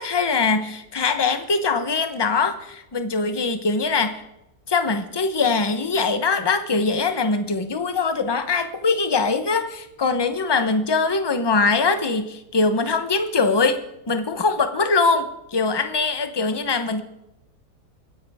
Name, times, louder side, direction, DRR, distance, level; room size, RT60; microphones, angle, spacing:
voice 1, 0.0-4.2 4.7-13.8 14.1-17.0, left 4 dB, 20° left, 8 dB, 0.7 m, -22 dB
26.5 x 10.5 x 3.6 m, 0.90 s
omnidirectional pair, 1.8 m